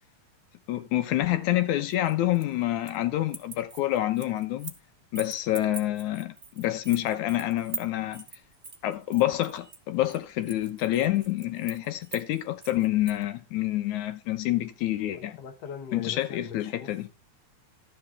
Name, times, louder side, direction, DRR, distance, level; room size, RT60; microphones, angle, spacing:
voice 1, 0.7-4.7 5.1-8.2 8.8-15.4 15.9-17.1, left 14 dB, 80° left, 2.4 m, -27 dB
sound 1, 1.9-3.0 3.3-4.8 5.1-13.2, right 4 dB, 75° right, 0.5 m, -43 dB
voice 2, 15.1-17.1, left 7 dB, 50° left, 1.3 m, -41 dB
12.5 x 7.1 x 3.6 m
omnidirectional pair, 3.4 m